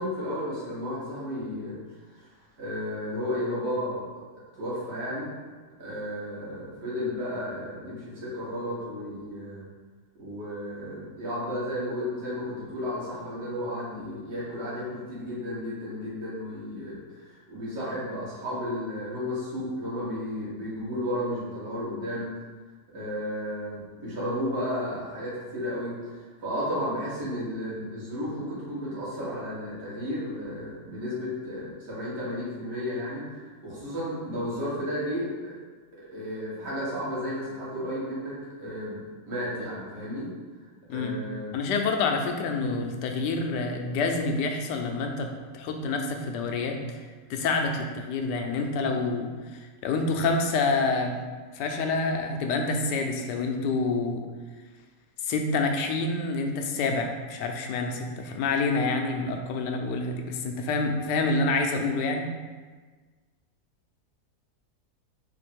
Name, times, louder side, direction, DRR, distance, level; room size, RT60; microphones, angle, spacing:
voice 1, 0.0-1.8 2.6-4.1 4.6-5.3 5.8-9.7 10.2-22.3 22.9-26.1 26.4-35.3 36.1-39.0 39.3-40.3 40.9-41.5, equal, 85° right, -8 dB, 2.1 m, -33 dB
voice 2, 40.9-41.2 41.5-47.0 47.3-51.2 51.5-54.2 55.2-62.3, left 3 dB, 90° left, 3 dB, 1.2 m, -27 dB
4.4 x 2.6 x 4.4 m, 1.4 s
omnidirectional pair, 1.8 m